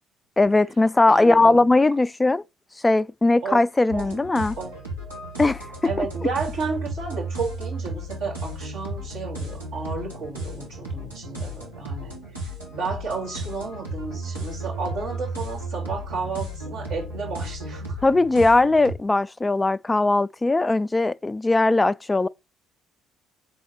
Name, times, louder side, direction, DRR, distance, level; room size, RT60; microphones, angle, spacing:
voice 1, 0.4-2.4 2.8-4.6 5.4-5.6 6.0-6.1 18.0-22.3, left 2 dB, 20° left, 0.3 m, -19 dB
voice 2, 1.1-1.7 3.4-3.6 3.9-4.1 4.6-4.8 5.8-12.1 12.7-18.0, right 4 dB, 65° right, 3.2 m, -32 dB
sound 1, 3.9-18.9, right 1 dB, 85° right, 2.0 m, -34 dB
6.7 x 3.9 x 4.3 m
figure-of-eight pair, 50°, 0 cm